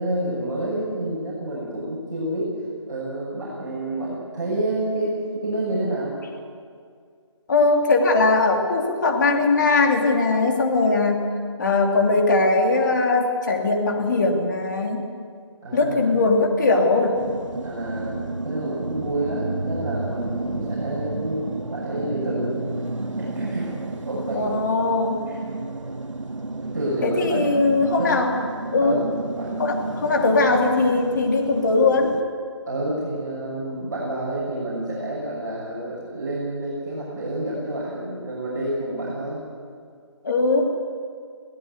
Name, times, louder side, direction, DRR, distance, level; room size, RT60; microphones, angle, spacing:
voice 1, 0.0-2.5 2.8-6.1 15.6-16.2 17.6-22.6 23.2-23.7 24.0-24.5 25.3-25.4 26.6-27.5 28.0-28.1 28.8-29.5 32.6-39.4, right 1 dB, 40° right, -7 dB, 6.7 m, -29 dB
voice 2, 7.5-11.3 11.6-15.1 15.7-17.2 24.3-25.2 27.0-28.3 28.7-29.0 29.6-32.1 40.2-40.6, left 3 dB, 40° left, 2 dB, 3.0 m, -20 dB
sound 1, 17.1-32.2, right 2 dB, 85° right, 1.6 m, -31 dB
23.0 x 16.5 x 8.2 m, 2.1 s
figure-of-eight pair, 165°, 16 cm